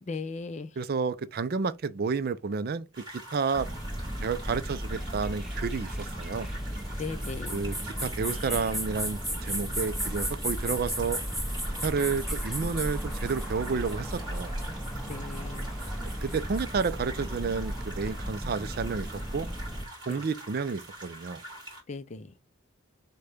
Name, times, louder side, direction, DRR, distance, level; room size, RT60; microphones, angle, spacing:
voice 1, 0.0-0.8 6.9-7.7 15.1-15.8 20.1-20.2 21.9-22.3, left 4 dB, 35° left, 0.4 m, -38 dB
voice 2, 0.8-2.9 3.1-3.7 4.2-6.5 7.5-11.2 11.8-14.5 16.0-19.1 19.3-19.5 20.1-21.4, right 5 dB, 50° right, 0.4 m, -31 dB
sound 1, 2.9-21.8, right 1 dB, 20° right, 2.3 m, -45 dB
sound 2, 3.5-19.8, equal, ahead, 0.8 m, -34 dB
6.4 x 2.2 x 3.4 m
head